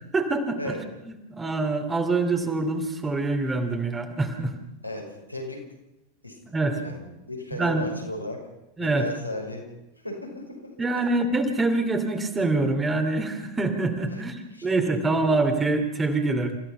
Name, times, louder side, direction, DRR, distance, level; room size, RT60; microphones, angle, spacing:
voice 1, 0.1-0.8 1.1-4.5 6.5-6.8 7.6-7.9 8.8-9.1 10.8-16.6, right 3 dB, 15° right, 6 dB, 2.9 m, -25 dB
voice 2, 4.8-5.6 6.2-6.4 6.7-8.4 8.8-9.7 10.0-10.8 14.1-14.2 14.5-14.7 15.1-15.4, left 1 dB, 90° left, -1 dB, 5.8 m, -35 dB
29.5 x 15.5 x 5.7 m, 0.91 s
figure-of-eight pair, 90°, 0 cm